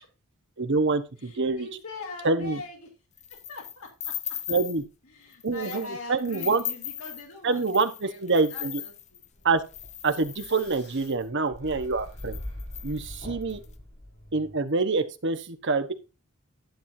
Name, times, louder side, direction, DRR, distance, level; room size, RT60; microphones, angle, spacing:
voice 1, 0.6-1.7 2.2-2.6 4.5-4.8 5.4-6.6 7.4-8.8 9.4-9.6 10.0-12.4 12.8-13.6 14.3-15.9, right 3 dB, 55° right, 9 dB, 1.1 m, -26 dB
voice 2, 1.2-2.9 3.3-4.1 5.0-7.6 8.0-9.2 13.6-13.8, left 2 dB, 80° left, 0 dB, 3.3 m, -42 dB
sound 1, 3.2-4.9 5.3-5.9 6.2-11.2 11.8-11.9 12.1-13.6, left 11 dB, 35° left, 0.8 m, -38 dB
sound 2, 9.4-14.6, left 1 dB, 50° left, 6.2 m, -42 dB
11.5 x 7.5 x 2.7 m, 0.31 s
head